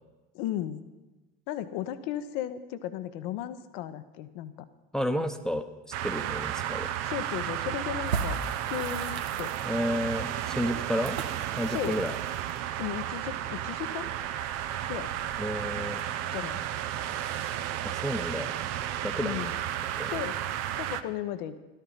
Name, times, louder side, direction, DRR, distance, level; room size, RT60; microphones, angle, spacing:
voice 1, 0.3-0.8 1.5-4.5 7.0-8.4 8.7-9.5 11.7-12.0 12.8-14.1 14.9-15.1 16.3-16.6 19.2-19.5 20.1-20.4 20.8-21.6, left 11 dB, 65° left, 12 dB, 1.0 m, -35 dB
voice 2, 4.9-5.6 6.0-6.9 9.6-11.2 11.6-12.2 15.4-16.0 17.8-18.5 19.0-19.5 20.0-20.2, equal, ahead, 7 dB, 1.0 m, -31 dB
sound 1, 5.9-21.0, right 11 dB, 55° right, 0.9 m, -33 dB
sound 2, 8.0-13.2, right 5 dB, 85° right, 1.1 m, -38 dB
13.5 x 12.5 x 5.7 m, 1.2 s
hypercardioid pair, 70°, 31 cm